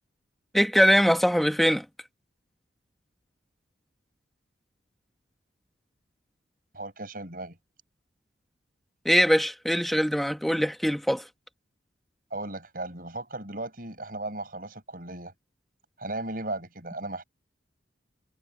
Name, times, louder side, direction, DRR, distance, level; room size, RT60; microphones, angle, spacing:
voice 1, 0.5-1.8 9.0-11.3, equal, ahead, 1.2 m, -22 dB
voice 2, 6.7-7.6 12.3-15.3 16.0-17.2, right 2 dB, 50° right, 6.7 m, -36 dB
head